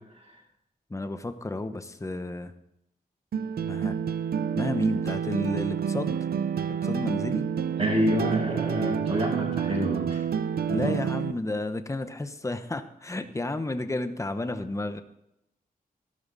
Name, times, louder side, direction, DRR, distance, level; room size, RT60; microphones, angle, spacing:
voice 1, 0.9-2.5 3.6-4.0 4.5-6.2 6.7-7.5 10.7-15.0, left 2 dB, 20° left, 9 dB, 1.0 m, -32 dB
sound 1, 3.3-11.3, right 7 dB, 85° right, 0.7 m, -28 dB
voice 2, 7.8-10.2 10.7-10.8, equal, 35° right, -9 dB, 6.2 m, -27 dB
14.5 x 13.0 x 4.1 m, 0.84 s
wide cardioid pair, 105°, 16 cm